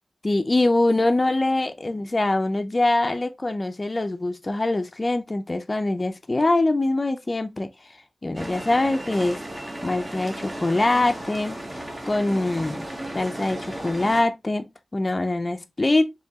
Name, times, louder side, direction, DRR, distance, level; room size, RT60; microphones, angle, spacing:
voice 1, 0.2-7.7 8.2-9.4 9.8-11.6 12.0-12.8 13.1-16.1, left 2 dB, 30° left, 0.5 m, -23 dB
sound 1, 8.4-14.2, right 1 dB, 25° right, 1.0 m, -35 dB
4.5 x 3.2 x 2.8 m
wide cardioid pair, 100°, 0 cm